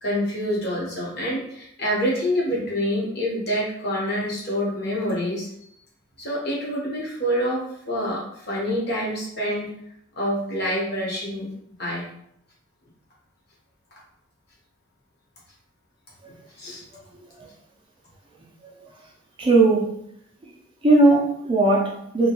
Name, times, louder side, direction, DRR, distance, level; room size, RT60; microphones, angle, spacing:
voice 1, 0.0-5.5 6.2-9.7 10.2-11.5 11.8-12.1 16.6-16.8, equal, 50° left, -4 dB, 0.9 m, -26 dB
voice 2, 17.1-17.5 18.6-18.7 19.4-19.9 20.4-20.5 20.8-22.3, right 2 dB, 25° right, -3 dB, 0.4 m, -19 dB
2.7 x 2.2 x 2.8 m, 0.74 s
head